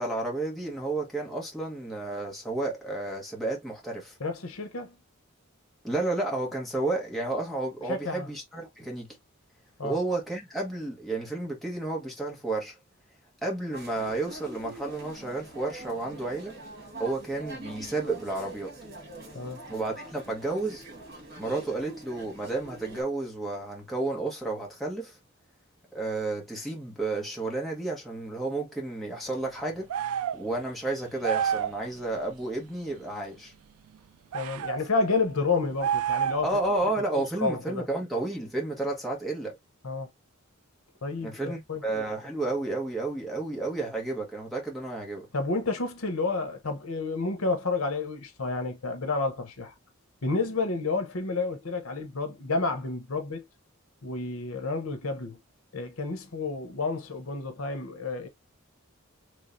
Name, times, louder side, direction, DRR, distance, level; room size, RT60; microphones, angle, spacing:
voice 1, 0.0-4.1 5.8-9.1 9.8-12.8 13.4-16.6 17.0-18.7 19.7-20.8 21.4-25.1 25.9-29.9 30.3-33.5 36.4-39.6 41.2-45.3, right 2 dB, ahead, 1.3 m, -31 dB
voice 2, 4.2-5.0 7.9-8.3 9.8-10.0 19.3-19.7 34.3-36.5 37.0-37.9 39.8-40.1 41.0-41.8 45.3-49.7 50.2-53.4 54.0-55.4 55.7-58.3, left 3 dB, 80° left, 1.0 m, -30 dB
sound 1, 13.7-23.0, right 2 dB, 50° right, 1.6 m, -44 dB
sound 2, 29.9-30.4 31.2-31.8 34.3-34.8 35.8-36.6, right 9 dB, 85° right, 0.3 m, -28 dB
3.4 x 3.3 x 2.6 m
head